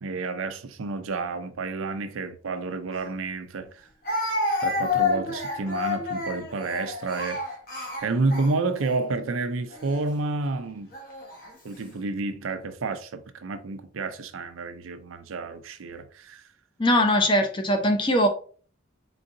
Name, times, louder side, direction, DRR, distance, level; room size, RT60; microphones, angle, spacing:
voice 1, 0.0-3.9 4.6-7.4 8.0-10.9 11.6-16.4, right 3 dB, 90° right, 0.5 m, -30 dB
Speech, 2.9-3.0 4.0-8.9 9.7-10.0 10.9-11.5, left 3 dB, 45° left, 1.1 m, -29 dB
voice 2, 16.8-18.3, equal, 25° left, 0.5 m, -21 dB
3.9 x 3.8 x 2.5 m
head